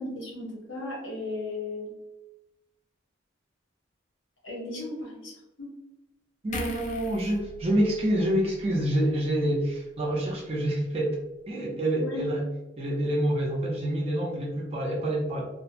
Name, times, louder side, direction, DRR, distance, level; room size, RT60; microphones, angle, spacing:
voice 1, 0.0-1.9 4.4-5.7 11.9-12.3, left 2 dB, 75° left, -4 dB, 0.9 m, -36 dB
voice 2, 6.4-11.2 11.5-12.4 12.8-15.5, right 1 dB, 30° right, -3 dB, 0.5 m, -27 dB
sound 1, 6.5-9.9 10.2-10.4, left 1 dB, 40° left, 0.4 m, -42 dB
2.7 x 2.1 x 2.5 m, 0.98 s
head